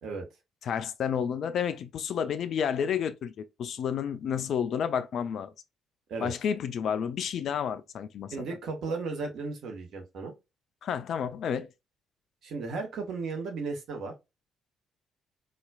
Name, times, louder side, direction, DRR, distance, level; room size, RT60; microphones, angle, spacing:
voice 1, 0.6-5.5 6.2-8.3 10.8-11.7, left 8 dB, 55° left, 0.3 m, -30 dB
voice 2, 8.3-10.3 12.4-14.1, right 4 dB, 60° right, 1.0 m, -35 dB
4.1 x 2.3 x 2.3 m
figure-of-eight pair, 45°, 0 cm